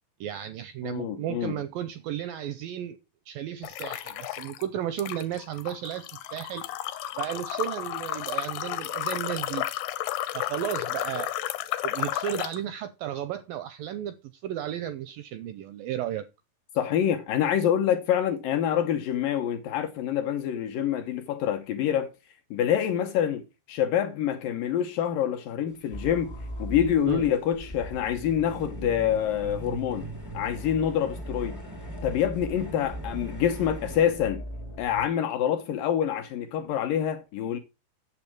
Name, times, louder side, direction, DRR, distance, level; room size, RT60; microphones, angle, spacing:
voice 1, 0.2-3.0 3.3-6.6 7.2-9.7 10.3-16.3 27.1-27.3, right 11 dB, 80° right, 2.1 m, -34 dB
voice 2, 0.8-1.5 16.8-22.1 22.5-26.3 26.6-31.6 32.0-34.4 34.8-37.6, left 9 dB, 70° left, 2.2 m, -26 dB
sound 1, 3.6-4.6 5.0-12.6, left 14 dB, 90° left, 3.0 m, -32 dB
sound 2, 25.7-34.1, right 2 dB, 15° right, 0.5 m, -46 dB
sound 3, 25.9-35.0, right 1 dB, 40° left, 0.9 m, -39 dB
8.8 x 7.6 x 6.0 m
omnidirectional pair, 4.8 m